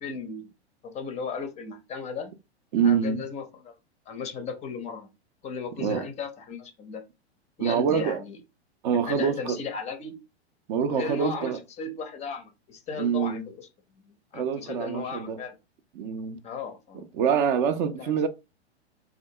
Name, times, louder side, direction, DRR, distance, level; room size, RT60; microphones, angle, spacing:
voice 1, 0.0-0.5 0.8-2.3 2.8-3.7 4.1-5.1 5.4-7.0 7.6-8.4 8.9-10.2 10.9-13.7 14.3-15.6 16.4-17.0 18.0-18.1, left 5 dB, 20° left, 0.5 m, -36 dB
voice 2, 2.7-3.2 5.8-6.1 7.6-8.2 8.8-9.6 10.7-11.6 13.0-13.4 14.3-15.4 16.0-16.4 16.9-18.3, right 7 dB, 45° right, 0.5 m, -25 dB
3.4 x 2.4 x 2.6 m
hypercardioid pair, 100°, 33 cm